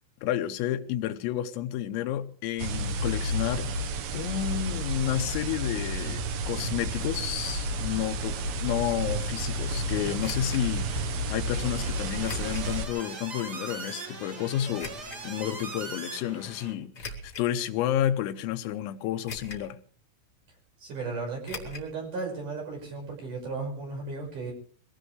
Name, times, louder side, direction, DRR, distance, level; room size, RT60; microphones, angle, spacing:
voice 1, 0.2-3.9 4.1-11.0 11.3-19.8, left 12 dB, 85° left, 9 dB, 3.6 m, -31 dB
sound 1, 2.6-12.9, right 1 dB, 90° right, 1.9 m, -31 dB
sound 2, 7.7-16.7, right 3 dB, 65° right, 1.0 m, -42 dB
sound 3, 10.2-10.6 12.2-12.7 13.3-13.4 14.8-15.2 16.9-17.5 18.1-18.2 19.3-19.7 20.0-20.1 21.4-21.9 22.2-22.3 22.5-22.6, left 2 dB, 55° left, 1.1 m, -41 dB
voice 2, 20.8-24.5, right 3 dB, 40° right, 0 dB, 6.7 m, -35 dB
23.0 x 18.0 x 3.3 m, 0.43 s
omnidirectional pair, 6.0 m